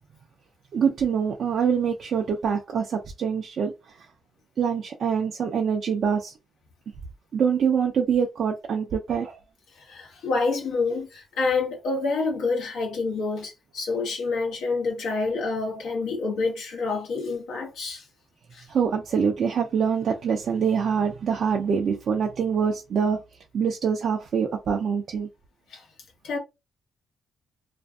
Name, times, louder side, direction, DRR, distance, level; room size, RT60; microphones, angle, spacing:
voice 1, 0.7-3.7 4.6-6.3 7.3-9.4 18.7-23.2 23.5-25.3, right 7 dB, 60° right, 0.4 m, -25 dB
voice 2, 9.7-18.1 18.5-18.7 25.7-25.9 26.2-26.4, left 3 dB, 80° left, 0.8 m, -28 dB
2.5 x 2.5 x 2.3 m
cardioid pair, 90°, 0 cm